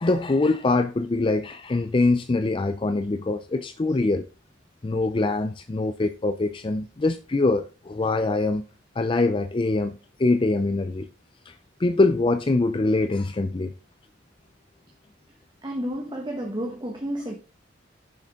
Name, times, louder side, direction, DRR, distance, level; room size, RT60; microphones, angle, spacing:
voice 1, 0.0-4.3 4.8-8.7 9.0-11.1 11.5-13.7, left 2 dB, 25° left, 0.4 m, -23 dB
voice 2, 15.6-17.3, equal, 25° right, 1.4 m, -31 dB
10.0 x 6.4 x 3.6 m
head